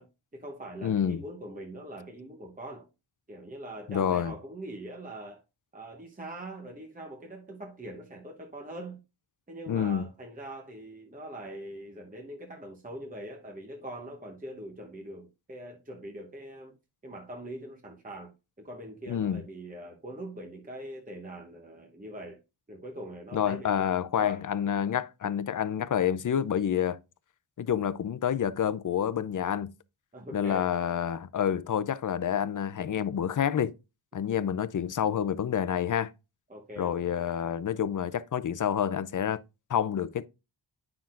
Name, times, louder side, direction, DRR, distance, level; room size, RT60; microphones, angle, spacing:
voice 1, 0.0-2.9 3.3-5.4 5.7-9.0 9.5-16.8 17.0-22.4 22.7-24.4 30.1-30.8 36.5-37.0, right 1 dB, 20° right, 1.0 m, -43 dB
voice 2, 0.8-1.2 3.9-4.3 9.7-10.0 19.1-19.4 23.3-27.0 27.6-29.7 30.3-33.7 34.1-36.1 36.8-39.4 39.7-40.2, left 9 dB, 45° left, 0.5 m, -28 dB
9.3 x 5.9 x 2.5 m
wide cardioid pair, 115°, 47 cm